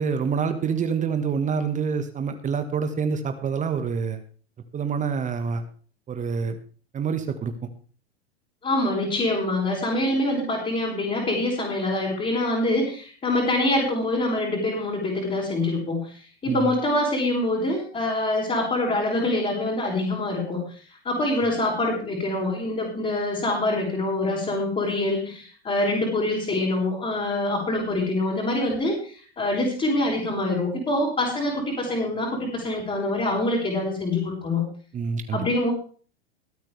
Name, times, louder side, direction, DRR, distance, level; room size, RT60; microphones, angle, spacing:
voice 1, 0.0-4.2 4.7-5.7 6.1-6.6 6.9-7.7 16.4-16.7 34.9-35.5, right 6 dB, 25° right, 8 dB, 1.7 m, -27 dB
voice 2, 8.6-34.6 35.3-35.7, left 1 dB, 20° left, -4 dB, 5.7 m, -25 dB
22.5 x 8.7 x 3.5 m, 0.41 s
figure-of-eight pair, 95°, 32 cm